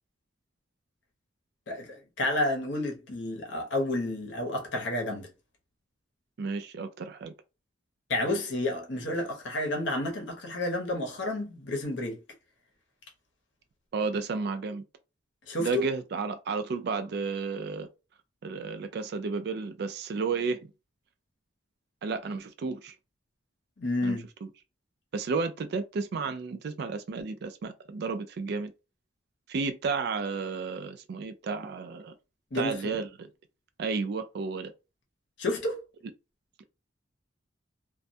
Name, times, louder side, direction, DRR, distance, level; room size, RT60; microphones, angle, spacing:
voice 1, 1.7-5.3 8.1-12.2 15.5-15.9 23.8-24.3 32.5-33.0 35.4-35.8, left 1 dB, 65° left, 0.8 m, -30 dB
voice 2, 6.4-7.3 13.9-14.8 15.6-17.9 18.4-20.6 22.0-22.9 24.0-24.5 25.1-28.7 29.5-32.1 32.5-33.3 33.8-34.7 36.6-36.7, right 4 dB, 55° right, 0.3 m, -32 dB
2.2 x 2.1 x 2.6 m
head